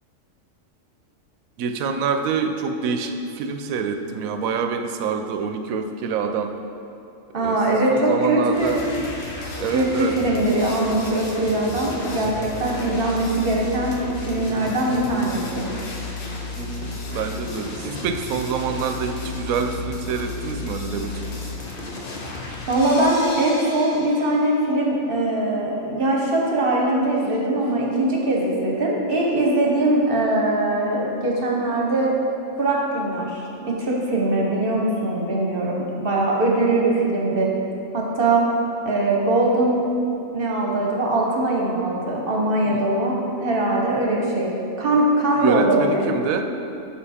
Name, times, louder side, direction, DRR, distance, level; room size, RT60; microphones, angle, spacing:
voice 1, 1.6-6.5 7.4-7.6 7.9-8.8 9.6-10.2 16.6-21.4 42.6-43.0 45.4-46.4, right 5 dB, 85° right, 6 dB, 1.0 m, -26 dB
voice 2, 7.3-8.8 9.7-14.0 14.2-15.7 22.7-32.2 32.6-37.5 37.9-38.5 38.8-39.8 40.3-44.5 44.8-46.0, right 2 dB, 45° right, -2 dB, 1.0 m, -21 dB
sound 1, 8.5-24.5, left 3 dB, 45° left, 0.9 m, -33 dB
6.9 x 5.6 x 4.2 m, 2.7 s
omnidirectional pair, 1.4 m